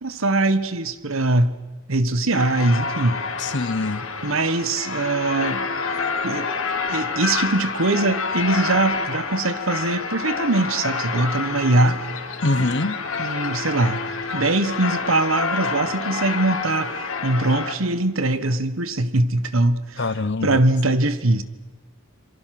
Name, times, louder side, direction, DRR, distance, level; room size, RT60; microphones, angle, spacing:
voice 1, 0.0-1.6 1.9-3.2 4.2-5.7 6.2-6.5 6.9-12.0 13.2-14.1 14.3-20.1 20.4-21.4, right 2 dB, 75° right, 1.4 m, -22 dB
sound 1, 2.3-17.7, left 4 dB, 75° left, 2.9 m, -28 dB
voice 2, 3.4-4.1 12.4-13.0 20.0-20.6, left 2 dB, 55° left, 0.9 m, -24 dB
27.0 x 23.5 x 6.1 m
head